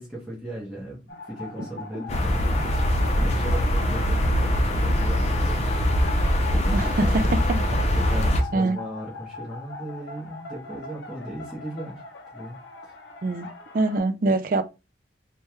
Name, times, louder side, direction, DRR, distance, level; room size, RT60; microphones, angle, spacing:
voice 1, 0.0-5.6 6.3-7.4 7.9-12.6 12.8-12.9, right 1 dB, 5° right, 1.1 m, -37 dB
sound 1, 1.1-14.0, left 4 dB, 80° left, 0.7 m, -41 dB
sound 2, 1.5-4.5, equal, 25° right, 1.3 m, -41 dB
sound 3, 2.1-8.4, equal, 35° left, 0.6 m, -22 dB
voice 2, 6.7-7.9 8.5-8.8 13.2-14.6, right 2 dB, 45° right, 0.3 m, -25 dB
3.3 x 2.3 x 4.3 m
head